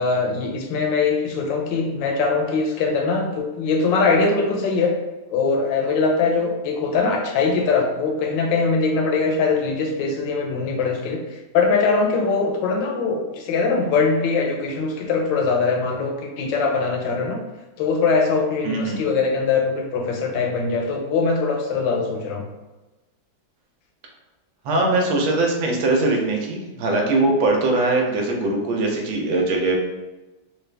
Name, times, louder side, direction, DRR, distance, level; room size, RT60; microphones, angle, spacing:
voice 1, 0.0-4.9 5.3-17.4 17.8-22.4, left 4 dB, 80° left, 1 dB, 1.4 m, -22 dB
voice 2, 18.6-19.0 24.6-29.8, right 2 dB, 90° right, 0 dB, 1.5 m, -21 dB
4.0 x 2.4 x 3.3 m, 1.1 s
omnidirectional pair, 2.0 m